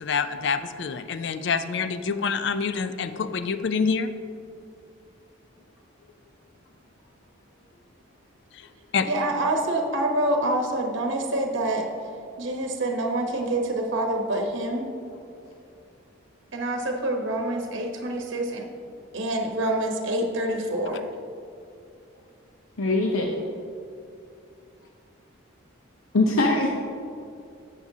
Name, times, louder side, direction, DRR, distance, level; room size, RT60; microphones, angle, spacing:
voice 1, 0.0-4.1 8.9-9.1, left 5 dB, 60° left, 11 dB, 0.4 m, -26 dB
voice 2, 9.1-11.9 12.4-14.8 16.5-18.7 19.1-21.1, right 1 dB, 65° right, 2 dB, 1.0 m, -26 dB
voice 3, 22.8-23.3 26.1-26.7, left 2 dB, 90° left, 1 dB, 0.7 m, -21 dB
10.5 x 8.2 x 2.8 m, 2.4 s
head